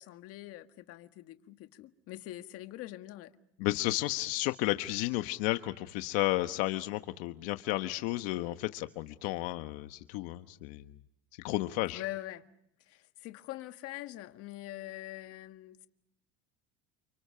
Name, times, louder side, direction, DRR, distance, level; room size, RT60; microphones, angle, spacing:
voice 1, 0.0-3.3 11.9-12.5 12.9-15.9, left 16 dB, 50° left, 1.6 m, -44 dB
voice 2, 3.6-10.8 11.4-12.0, left 18 dB, 70° left, 1.2 m, -32 dB
30.0 x 29.0 x 5.7 m
cardioid pair, 145°, 30 cm